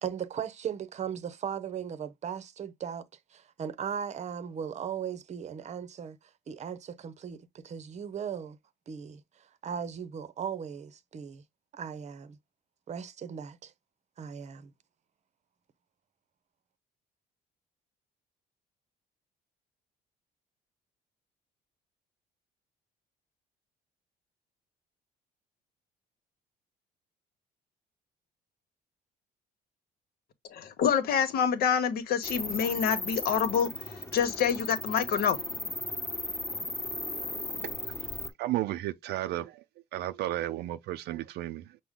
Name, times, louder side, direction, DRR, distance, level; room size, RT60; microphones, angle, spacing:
voice 1, 0.0-8.6 8.9-11.4 11.7-12.4 12.9-13.7 14.2-14.7, right 8 dB, 40° right, 0.7 m, -38 dB
voice 2, 30.5-35.4, left 7 dB, 65° left, 1.1 m, -27 dB
sound 1, 32.2-38.3, left 2 dB, 15° left, 1.1 m, -36 dB
voice 3, 38.4-39.6 39.9-41.8, right 15 dB, 75° right, 0.5 m, -33 dB
6.1 x 2.2 x 3.6 m
cardioid pair, 110°, 17 cm